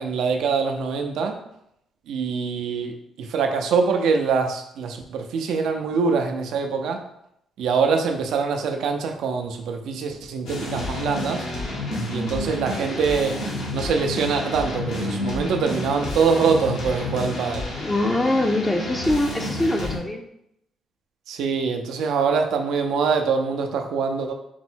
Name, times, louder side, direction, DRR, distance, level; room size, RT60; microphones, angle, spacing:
voice 1, 0.0-1.4 2.1-7.0 7.6-11.5 12.1-13.4 13.7-17.7 21.3-24.3, right 5 dB, 80° right, 4 dB, 0.5 m, -24 dB
sound 1, 10.5-20.0, left 1 dB, 80° left, 1.1 m, -30 dB
voice 2, 17.8-20.2, left 1 dB, 15° left, 3 dB, 0.4 m, -23 dB
4.3 x 2.0 x 4.4 m, 0.78 s
cardioid pair, 90°, 0 cm